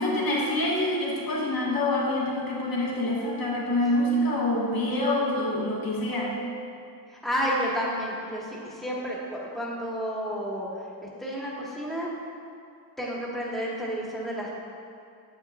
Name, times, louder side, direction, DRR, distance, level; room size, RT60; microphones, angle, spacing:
voice 1, 0.0-6.4, left 1 dB, 60° left, -4 dB, 1.7 m, -26 dB
voice 2, 7.1-10.7 11.2-12.1 13.0-14.5, equal, ahead, -6 dB, 2.0 m, -31 dB
9.6 x 7.4 x 2.6 m, 2.4 s
cardioid pair, 70°, 40 cm